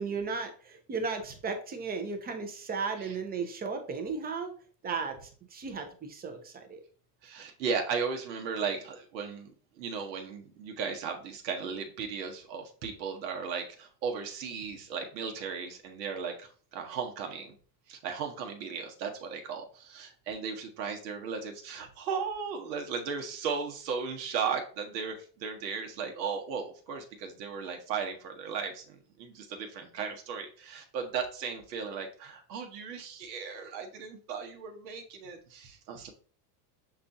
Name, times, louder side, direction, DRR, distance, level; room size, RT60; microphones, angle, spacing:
voice 1, 0.0-4.6 4.8-6.8, right 4 dB, 20° right, 6 dB, 0.5 m, -35 dB
voice 2, 7.2-17.6 17.9-36.1, right 6 dB, 90° right, 3 dB, 1.0 m, -36 dB
6.5 x 2.4 x 2.6 m, 0.42 s
supercardioid pair, 115°, 50 cm